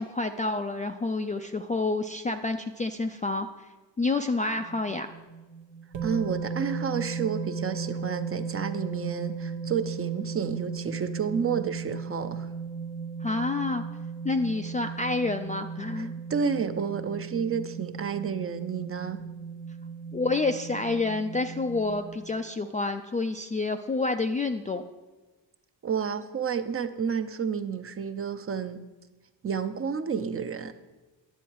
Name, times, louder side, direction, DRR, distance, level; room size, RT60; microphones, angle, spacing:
voice 1, 0.0-3.7 4.0-5.1 13.2-13.8 14.2-16.1 20.1-24.8, left 3 dB, 20° left, 6 dB, 0.3 m, -28 dB
sound 1, 4.6-22.4, right 5 dB, 85° right, 1.2 m, -36 dB
voice 2, 6.0-12.5 16.0-19.2 25.8-28.8 29.4-30.7, right 6 dB, 30° right, 10 dB, 0.6 m, -30 dB
10.5 x 7.1 x 4.6 m, 1.2 s
cardioid pair, 90°, 44 cm